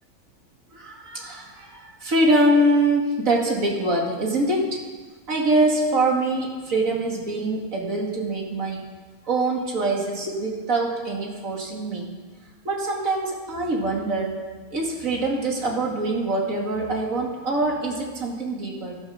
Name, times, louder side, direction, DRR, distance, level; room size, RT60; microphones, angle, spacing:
voice 1, 0.7-4.8 5.3-8.9 9.3-12.1 12.6-19.0, right 2 dB, 65° right, -1 dB, 2.7 m, -24 dB
16.0 x 12.0 x 5.7 m, 1.4 s
omnidirectional pair, 1.5 m